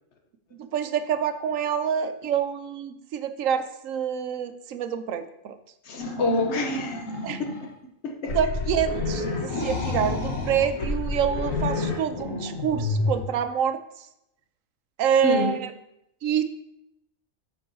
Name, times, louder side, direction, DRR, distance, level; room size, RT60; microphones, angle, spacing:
voice 1, 0.6-5.6 7.2-7.4 8.3-13.8 15.0-15.7 16.2-16.4, right 8 dB, 80° right, 10 dB, 1.0 m, -27 dB
voice 2, 5.8-7.1 7.6-7.7 8.0-8.4 15.2-15.6, left 2 dB, 60° left, 3 dB, 1.2 m, -27 dB
sound 1, 6.0-7.7 8.3-13.2, left 2 dB, 85° left, 1.7 m, -29 dB
13.0 x 5.3 x 2.7 m, 0.81 s
omnidirectional pair, 1.3 m